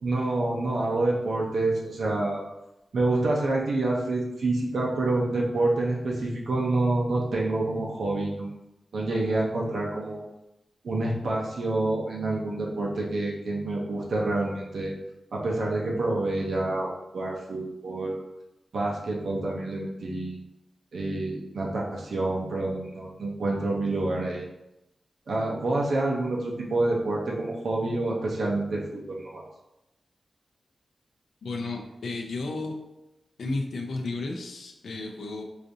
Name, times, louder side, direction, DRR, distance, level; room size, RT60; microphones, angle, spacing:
voice 1, 0.0-2.4 2.9-8.5 8.9-10.2 10.8-14.9 15.3-18.2 18.7-20.4 20.9-24.5 25.3-29.4, right 2 dB, 75° right, -2 dB, 0.6 m, -27 dB
voice 2, 31.4-32.7 33.4-35.4, left 3 dB, 85° left, 2 dB, 0.4 m, -33 dB
4.9 x 2.6 x 2.6 m, 0.90 s
wide cardioid pair, 170°, 0 cm